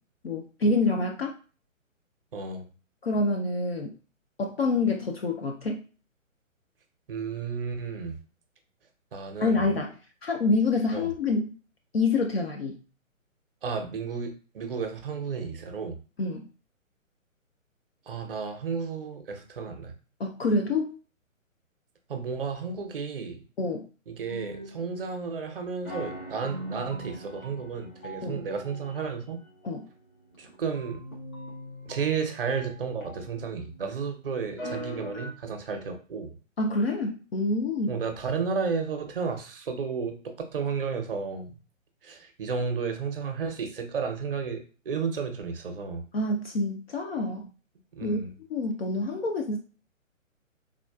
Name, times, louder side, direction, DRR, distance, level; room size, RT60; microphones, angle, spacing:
voice 1, 0.2-1.3 3.0-3.9 4.4-5.8 9.4-9.9 10.2-11.5 11.9-12.8 16.2-16.5 20.2-21.0 23.6-23.9 28.2-28.4 29.6-29.9 36.6-38.0 46.1-47.5 48.0-48.2 48.5-49.6, left 3 dB, 50° left, 2 dB, 0.5 m, -27 dB
voice 2, 2.3-2.7 7.1-8.2 9.1-9.7 10.9-11.1 13.6-16.0 18.1-19.9 22.1-23.4 24.1-29.4 30.4-31.0 31.9-36.4 37.9-41.6 42.0-46.1 48.0-48.3, right 5 dB, 45° right, 6 dB, 0.6 m, -32 dB
sound 1, 24.3-25.5 25.8-34.0 34.4-35.3, right 1 dB, 80° left, 1.6 m, -42 dB
3.6 x 2.3 x 2.3 m, 0.36 s
figure-of-eight pair, 135°, 40 cm